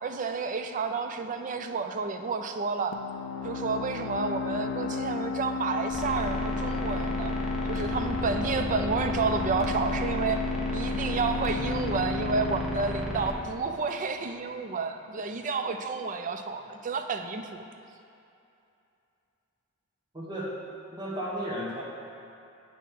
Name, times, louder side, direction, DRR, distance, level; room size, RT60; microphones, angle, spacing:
voice 1, 0.0-3.0 3.4-7.3 7.7-10.4 10.7-17.6, right 4 dB, 35° right, 6 dB, 0.4 m, -30 dB
sound 1, 2.9-14.3, left 5 dB, 85° left, 0.3 m, -34 dB
sound 2, 5.9-13.3, equal, ahead, 0.8 m, -33 dB
voice 2, 20.1-20.6 20.9-21.8, equal, 20° right, -4 dB, 1.3 m, -33 dB
8.2 x 4.2 x 5.7 m, 2.7 s
head